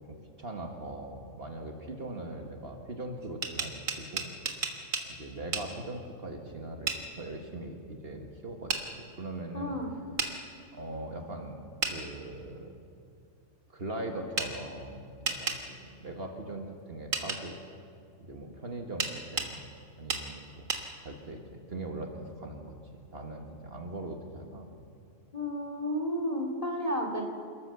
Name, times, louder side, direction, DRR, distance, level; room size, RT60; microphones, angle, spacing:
voice 1, 0.4-4.3 5.1-9.8 10.7-11.6 11.9-12.7 13.7-17.6 18.2-19.7 20.0-22.8 23.1-24.7, right 2 dB, 50° right, 3 dB, 1.8 m, -40 dB
sound 1, 3.2-5.1 5.5-5.7 6.9-7.0 8.7-8.8 10.2-10.3 11.8-12.0 14.4-14.5 15.3-15.6 17.1-17.4 19.0-19.5 20.1-20.3 20.7-20.8, right 5 dB, 75° right, 2.0 m, -31 dB
voice 2, 9.5-9.9 25.3-27.2, equal, 25° left, 1 dB, 2.7 m, -32 dB
28.0 x 13.5 x 6.9 m, 2.4 s
omnidirectional pair, 1.4 m